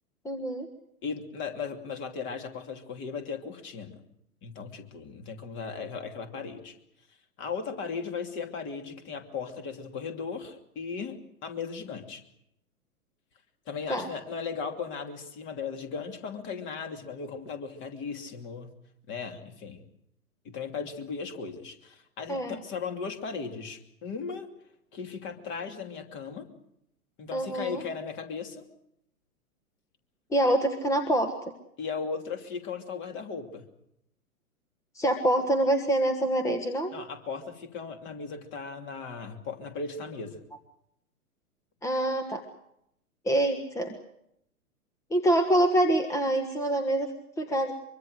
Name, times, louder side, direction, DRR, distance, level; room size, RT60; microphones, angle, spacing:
voice 1, 0.2-0.7 13.9-14.1 22.3-22.6 27.3-27.8 30.3-31.3 34.9-36.9 41.8-42.4 43.2-43.9 45.1-47.7, right 1 dB, 5° left, 6 dB, 1.4 m, -25 dB
voice 2, 1.0-4.0 4.4-6.8 7.4-12.2 13.7-18.7 19.1-19.8 20.4-24.5 24.9-26.5 27.2-28.6 31.8-33.6 36.9-40.4, left 5 dB, 25° left, 6 dB, 2.8 m, -37 dB
24.0 x 23.5 x 6.5 m, 0.77 s
figure-of-eight pair, 120°, 44 cm